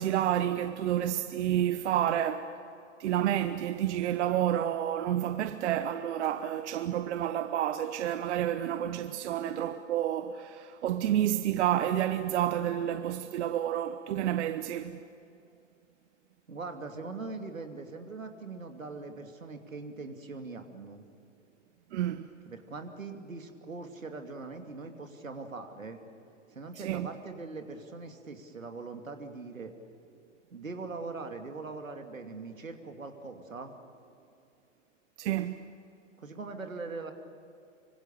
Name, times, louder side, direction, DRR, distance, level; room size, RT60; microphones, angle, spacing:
voice 1, 0.0-2.5 3.0-15.0 21.9-22.3 26.8-27.1 35.2-35.7, right 11 dB, 60° right, 1.1 m, -29 dB
voice 2, 16.5-21.0 22.4-26.0 26.5-29.7 30.5-33.7 36.2-37.1, right 3 dB, 85° right, 2.7 m, -41 dB
25.5 x 24.5 x 6.9 m
figure-of-eight pair, 100°, 39 cm